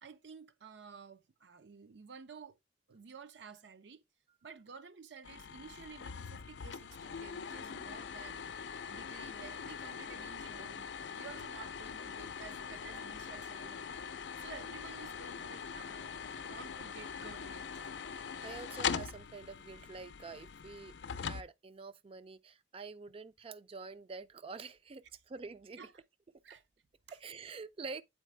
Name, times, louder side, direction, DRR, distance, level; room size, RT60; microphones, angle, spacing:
voice 1, 0.0-2.6 2.9-4.0 4.4-8.4 8.9-13.9 14.4-16.1 16.5-17.9 25.8-26.0 26.4-26.6 27.1-27.2, right 5 dB, 80° right, 0.6 m, -52 dB
sound 1, 5.2-21.4, left 6 dB, 85° left, 0.4 m, -42 dB
voice 2, 18.4-25.8 27.1-28.0, right 4 dB, 30° right, 0.4 m, -47 dB
8.3 x 4.1 x 3.2 m
head